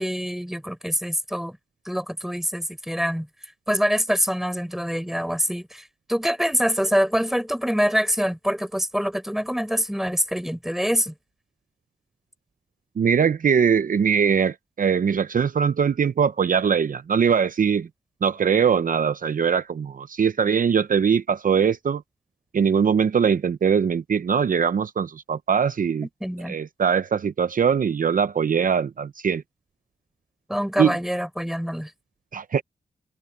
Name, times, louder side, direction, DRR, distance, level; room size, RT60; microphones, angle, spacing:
voice 1, 0.0-1.6 1.9-3.3 3.7-11.1 26.2-26.6 30.5-31.9, equal, ahead, 6.3 m, -25 dB
voice 2, 13.0-17.9 18.2-22.0 22.5-26.1 26.5-29.4 30.8-30.9 32.3-32.6, right 7 dB, 60° right, 0.6 m, -21 dB
wide cardioid pair, 80°, 16 cm